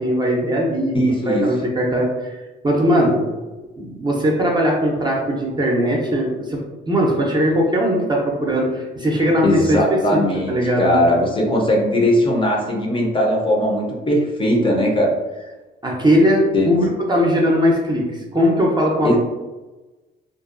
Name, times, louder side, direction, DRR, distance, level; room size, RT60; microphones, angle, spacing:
voice 1, 0.0-1.0 1.3-2.3 2.6-3.3 3.8-6.6 6.9-9.8 10.1-10.2 10.5-10.9 15.8-19.2, equal, 20° right, -2 dB, 0.6 m, -19 dB
voice 2, 0.9-1.5 9.4-15.5 16.5-16.7 19.0-19.2, equal, 25° left, -2 dB, 0.6 m, -19 dB
2.5 x 2.2 x 2.5 m, 1.1 s
cardioid pair, 90°, 20 cm